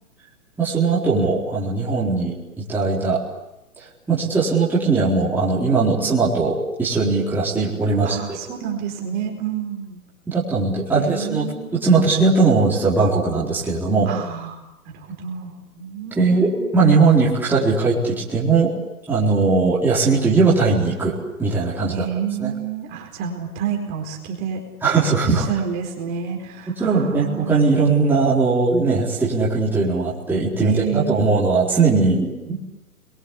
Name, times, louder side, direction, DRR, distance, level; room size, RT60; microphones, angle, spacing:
voice 1, 0.6-3.2 4.1-8.4 10.3-14.1 16.2-18.7 19.1-21.1 21.4-22.1 22.4-22.5 24.8-25.4 26.8-32.6, right 4 dB, 5° right, -8 dB, 4.1 m, -19 dB
voice 2, 8.0-10.0 10.9-11.9 14.1-14.6 14.9-16.9 21.9-24.6 25.2-27.6 30.6-31.3, right 7 dB, 20° right, 1 dB, 4.4 m, -29 dB
29.5 x 23.0 x 8.4 m, 0.94 s
hypercardioid pair, 160°, 45 cm